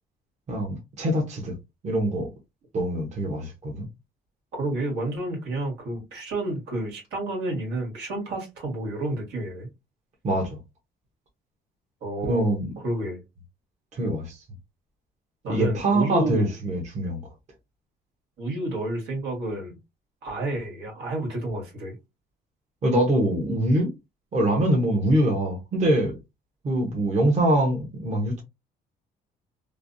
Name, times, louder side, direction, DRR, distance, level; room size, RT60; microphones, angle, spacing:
voice 1, 0.5-1.6 1.8-2.3 2.7-3.9 10.2-10.6 12.2-12.7 13.9-14.4 15.5-17.2 22.8-23.9 24.3-26.2 26.6-28.4, right 1 dB, 45° right, 1.0 m, -24 dB
voice 2, 4.6-9.7 12.0-12.5 12.8-13.2 15.4-16.5 18.4-19.8 20.2-21.9, right 1 dB, 85° right, 1.6 m, -30 dB
3.2 x 2.1 x 2.6 m
cardioid pair, 110°, 17 cm